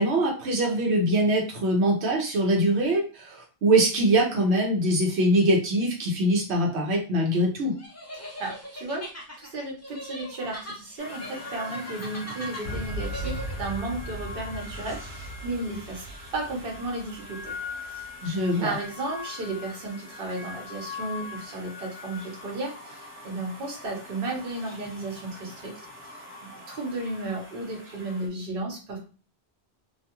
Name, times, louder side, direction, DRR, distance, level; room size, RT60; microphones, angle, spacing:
voice 1, 0.0-7.7 18.2-18.7, right 1 dB, 85° right, -1 dB, 1.0 m, -23 dB
sound 1, 7.8-13.8, equal, 20° left, 0.5 m, -40 dB
voice 2, 8.4-9.1 9.4-16.0 16.3-17.5 17.9-18.1 18.6-25.7 26.4-29.0, right 2 dB, 60° right, 0 dB, 1.0 m, -34 dB
sound 2, 11.0-28.3, left 3 dB, 15° right, 0.7 m, -42 dB
Boom, 12.6-18.5, equal, 75° left, 0.8 m, -38 dB
2.5 x 2.2 x 2.9 m, 0.36 s
omnidirectional pair, 1.1 m